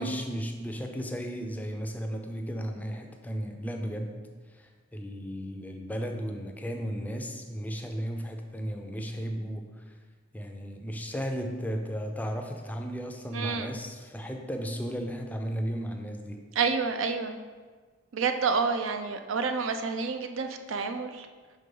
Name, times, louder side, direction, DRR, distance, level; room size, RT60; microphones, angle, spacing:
voice 1, 0.0-4.2 4.5-9.9 10.3-16.4, equal, 10° left, 3 dB, 0.4 m, -35 dB
voice 2, 13.3-13.7 16.6-17.4 18.1-21.3, right 5 dB, 80° right, 7 dB, 0.5 m, -29 dB
5.2 x 3.7 x 5.3 m, 1.5 s
head